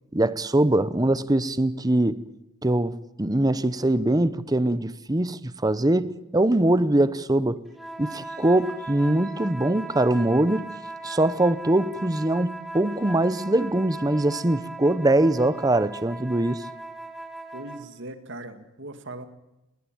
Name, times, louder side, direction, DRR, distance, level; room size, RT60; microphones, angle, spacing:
voice 1, 0.1-2.2 2.6-7.6 8.0-10.7 11.0-16.6, right 1 dB, 15° right, 0.8 m, -22 dB
sound 1, 7.7-17.9, right 2 dB, ahead, 1.7 m, -38 dB
voice 2, 17.5-19.3, right 2 dB, 55° right, 2.1 m, -39 dB
20.0 x 19.0 x 8.9 m
head